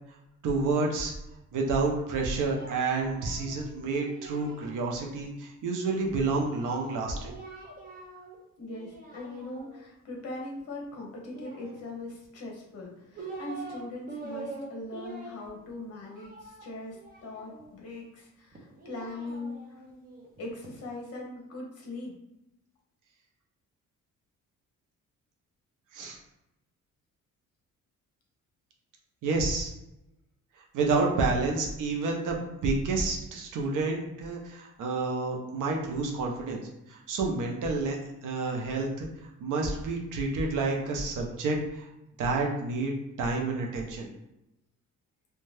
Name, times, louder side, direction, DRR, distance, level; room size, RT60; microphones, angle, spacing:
voice 1, 0.4-1.1 1.5-7.4 25.9-26.2 29.2-29.7 30.7-36.6 36.9-38.0 38.2-39.1 39.4-41.9 42.2-44.1, right 3 dB, 75° right, 0 dB, 0.6 m, -29 dB
Singing, 1.9-5.2 6.3-8.4 8.7-9.9 11.3-12.2 12.8-13.8 14.1-17.7 18.5-20.8, right 3 dB, 30° right, 0.5 m, -45 dB
voice 2, 8.6-19.6 20.4-22.2, left 2 dB, 50° left, -1 dB, 0.8 m, -40 dB
2.6 x 2.2 x 3.2 m, 0.90 s
wide cardioid pair, 165°, 31 cm